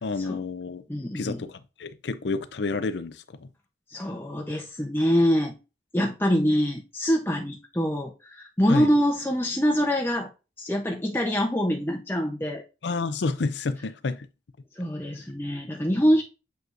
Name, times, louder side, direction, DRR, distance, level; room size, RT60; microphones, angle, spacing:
voice 1, 0.0-0.8 1.1-3.5 8.7-8.9 12.8-14.3, left 3 dB, 80° left, 0.5 m, -29 dB
voice 2, 0.9-1.4 3.9-5.6 5.9-10.3 10.6-12.6 14.8-16.2, equal, 10° left, 0.8 m, -25 dB
7.8 x 5.1 x 2.6 m
head